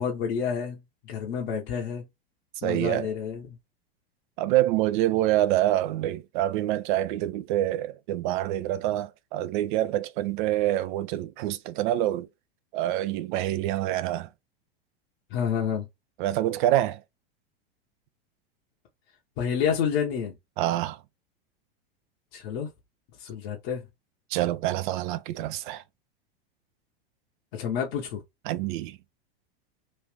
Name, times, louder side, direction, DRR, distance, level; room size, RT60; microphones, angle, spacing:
voice 1, 0.0-2.0 2.6-3.6 15.3-15.9 19.4-20.3 22.3-22.7 23.2-23.9 27.5-28.2, left 7 dB, 60° left, 1.0 m, -29 dB
voice 2, 2.6-3.1 4.4-12.3 12.7-14.3 16.2-17.0 20.6-21.0 24.3-25.8 28.5-28.9, right 14 dB, 55° right, 0.4 m, -26 dB
3.2 x 2.6 x 3.3 m
hypercardioid pair, 105°, 30 cm